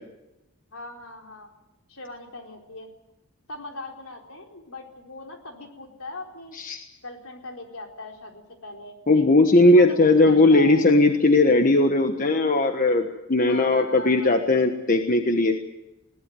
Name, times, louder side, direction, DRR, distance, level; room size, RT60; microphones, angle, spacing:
voice 1, 0.7-1.5 1.9-2.9 3.5-6.6 7.0-9.4 9.6-10.8 13.5-14.3, left 2 dB, 70° left, 2 dB, 4.2 m, -40 dB
voice 2, 9.1-15.5, left 2 dB, 40° left, 5 dB, 1.3 m, -18 dB
21.0 x 18.0 x 9.4 m, 0.96 s
head